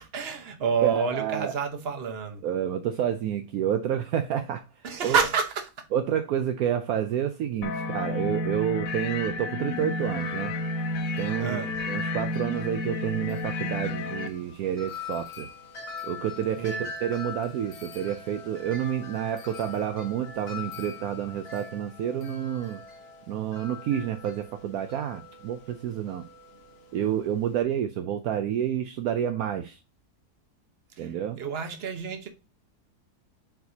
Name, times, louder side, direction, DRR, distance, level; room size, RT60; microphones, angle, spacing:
voice 1, 0.0-2.4 4.8-5.9 11.4-11.7 16.6-16.9 31.0-32.3, right 6 dB, 45° right, 1.1 m, -29 dB
voice 2, 0.8-1.5 2.4-5.2 5.9-10.5 11.2-11.6 11.9-15.5 16.0-22.8 23.3-26.2 26.9-29.8 31.0-31.4, right 10 dB, 70° right, 1.0 m, -29 dB
sound 1, 7.6-14.3, left 2 dB, 65° left, 1.1 m, -31 dB
Wind chime, 9.7-27.6, left 4 dB, 45° left, 1.1 m, -43 dB
7.6 x 4.8 x 2.8 m
omnidirectional pair, 1.7 m